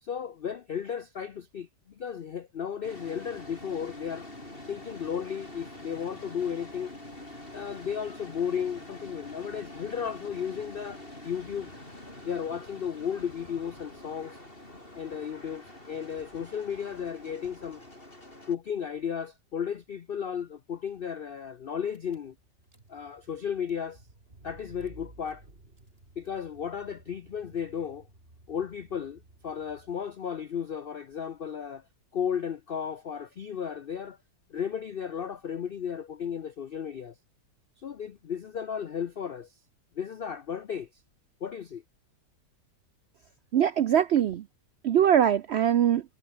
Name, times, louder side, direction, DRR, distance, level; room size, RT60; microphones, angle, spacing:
voice 1, 0.0-4.3 4.7-7.0 7.5-11.7 12.2-14.4 15.0-17.8 18.5-22.3 22.9-24.0 24.4-25.4 26.2-28.1 28.5-31.8 32.1-34.2 34.5-37.1 37.8-39.5 39.9-41.0 41.4-41.8, left 8 dB, 70° left, 0.5 m, -34 dB
sound 1, 2.8-18.5, left 1 dB, 30° left, 6.6 m, -46 dB
Car / Engine, 21.6-21.7 21.9-30.3, right 2 dB, 35° right, 4.5 m, -55 dB
voice 2, 43.5-44.4 44.8-46.0, right 10 dB, 85° right, 0.5 m, -22 dB
omnidirectional pair, 1.8 m